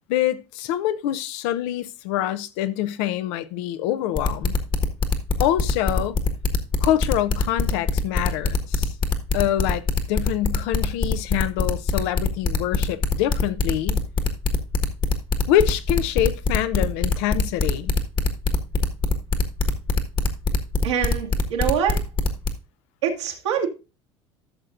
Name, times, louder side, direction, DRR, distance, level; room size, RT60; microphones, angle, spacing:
voice 1, 0.1-4.5 5.4-6.2 6.8-8.9 9.3-9.8 10.1-14.0 15.5-17.9, left 12 dB, 70° left, 0.7 m, -25 dB
sound 1, 4.2-22.5, left 4 dB, 35° left, 1.4 m, -22 dB
voice 2, 20.8-22.0 23.0-23.7, right 8 dB, 85° right, 2.0 m, -24 dB
13.5 x 6.5 x 2.5 m
hypercardioid pair, 75°, 15 cm